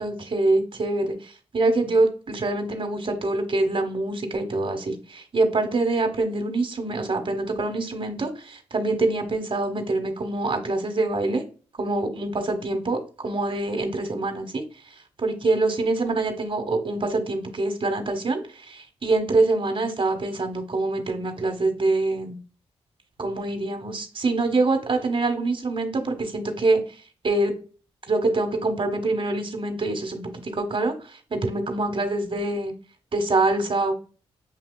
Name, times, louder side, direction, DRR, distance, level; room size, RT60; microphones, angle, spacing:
voice 1, 0.0-11.4 11.8-14.6 15.2-22.4 23.2-26.8 27.2-27.5 28.1-30.9 31.3-32.7 33.1-33.9, right 2 dB, 45° right, 5 dB, 1.4 m, -25 dB
7.3 x 2.7 x 2.2 m, 0.37 s
supercardioid pair, 45°, 12 cm